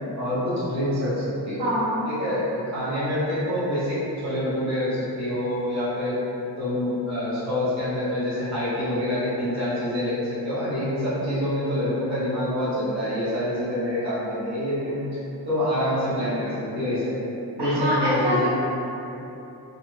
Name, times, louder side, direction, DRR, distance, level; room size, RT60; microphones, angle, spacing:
voice 1, 0.2-1.6 2.0-6.2 6.6-15.0 15.4-17.1 17.6-18.5, left 1 dB, 45° right, -11 dB, 1.1 m, -26 dB
voice 2, 1.6-2.0 17.6-18.5, equal, 85° right, -11 dB, 1.3 m, -24 dB
2.5 x 2.4 x 3.3 m, 2.9 s
wide cardioid pair, 160°, 40 cm